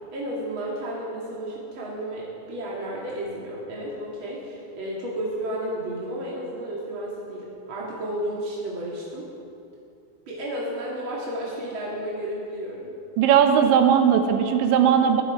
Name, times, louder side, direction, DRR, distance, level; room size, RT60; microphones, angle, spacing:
voice 1, 0.1-9.3 10.3-12.9, right 1 dB, 40° right, -5 dB, 1.8 m, -32 dB
voice 2, 13.2-15.2, right 8 dB, 75° right, 6 dB, 3.2 m, -18 dB
21.0 x 13.0 x 4.8 m, 2.7 s
omnidirectional pair, 5.5 m